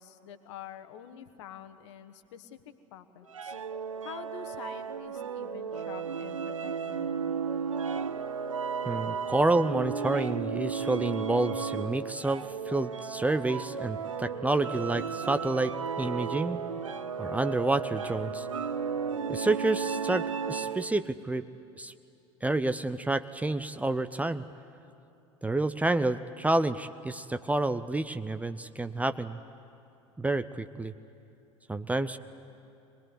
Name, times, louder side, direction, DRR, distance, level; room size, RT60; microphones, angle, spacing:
voice 1, 0.0-2.6 2.9-3.5 4.0-7.4, left 9 dB, 60° left, 11 dB, 1.3 m, -47 dB
sound 1, 3.2-21.0, left 4 dB, 15° left, 1.4 m, -50 dB
sound 2, 3.3-21.0, right 6 dB, 80° right, 0.6 m, -34 dB
voice 2, 8.9-15.7 16.0-16.6 17.2-18.5 19.3-21.4 21.8-21.9 22.4-24.4 25.4-29.4 30.2-30.9 31.7-32.2, right 2 dB, 10° right, 12 dB, 0.6 m, -29 dB
24.0 x 20.0 x 9.7 m, 2.8 s
figure-of-eight pair, 75°, 17 cm